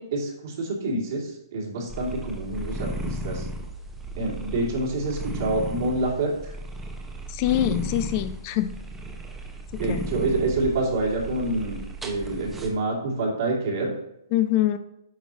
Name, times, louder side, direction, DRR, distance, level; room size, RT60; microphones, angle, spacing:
voice 1, 0.0-3.4 4.2-6.5 9.8-11.8 12.0-13.9, right 2 dB, 55° right, -2 dB, 2.5 m, -27 dB
sound 1, 1.9-12.7, right 1 dB, 10° right, 0.9 m, -35 dB
voice 2, 7.3-8.7 9.9-10.1 14.3-14.8, left 13 dB, 35° left, 10 dB, 0.5 m, -24 dB
8.7 x 5.5 x 2.9 m, 0.83 s
hypercardioid pair, 130°, 2 cm